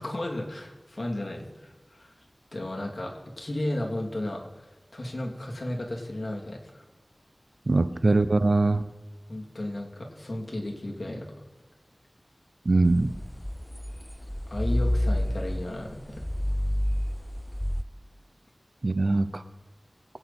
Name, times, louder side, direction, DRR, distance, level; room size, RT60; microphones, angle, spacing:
voice 1, 0.0-2.1 2.5-6.8 9.3-11.3 14.5-16.0, left 1 dB, 60° left, -1 dB, 3.1 m, -34 dB
voice 2, 7.7-8.8 12.7-13.1 18.8-19.4, right 2 dB, 70° right, 12 dB, 0.8 m, -22 dB
sound 1, 12.9-17.8, left 1 dB, 15° left, 0.5 m, -29 dB
23.0 x 9.2 x 4.4 m, 1.3 s
wide cardioid pair, 50°, 0 cm